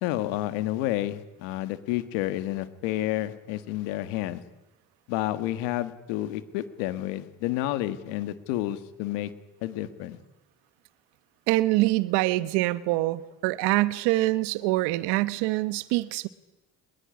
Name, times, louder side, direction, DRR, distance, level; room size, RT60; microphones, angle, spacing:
voice 1, 0.0-4.4 5.1-9.3 9.6-10.2, left 14 dB, 90° left, 1.8 m, -30 dB
voice 2, 11.5-16.3, right 18 dB, 85° right, 1.3 m, -25 dB
24.0 x 20.5 x 9.8 m
supercardioid pair, 70°, 39 cm